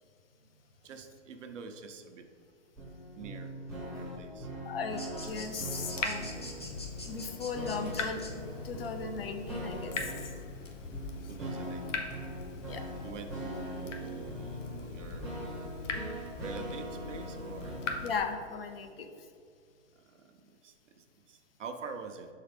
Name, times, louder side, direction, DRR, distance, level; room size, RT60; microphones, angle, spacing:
voice 1, 0.8-2.3 3.1-3.5 3.8-4.5 11.3-12.1 13.0-15.3 16.4-17.8 20.1-20.4 20.6-22.3, right 5 dB, 70° right, 5 dB, 1.0 m, -46 dB
sound 1, 2.8-18.1, equal, ahead, 0.9 m, -41 dB
voice 2, 4.6-6.5 7.1-8.2 8.6-10.1 12.7-12.8 18.0-19.1, left 5 dB, 50° left, 7 dB, 0.7 m, -37 dB
sound 2, 5.0-8.3, left 1 dB, 25° left, 0.3 m, -45 dB
Water tap faucet / Drip, 5.3-18.2, left 4 dB, 80° left, 1.2 m, -41 dB
5.8 x 4.7 x 5.1 m, 2.2 s
hypercardioid pair, 165°, 38 cm